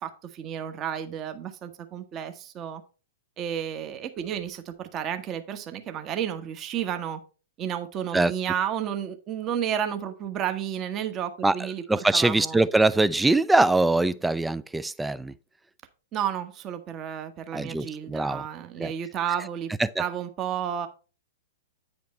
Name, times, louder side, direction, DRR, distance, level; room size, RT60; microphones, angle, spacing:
voice 1, 0.0-2.8 3.4-7.2 7.6-12.6 16.1-19.7 20.0-20.9, right 9 dB, 30° right, 1.2 m, -32 dB
voice 2, 11.9-15.3 17.5-18.4 18.8-18.9, right 2 dB, 5° right, 0.4 m, -22 dB
9.3 x 5.1 x 4.3 m
figure-of-eight pair, 105°, 0 cm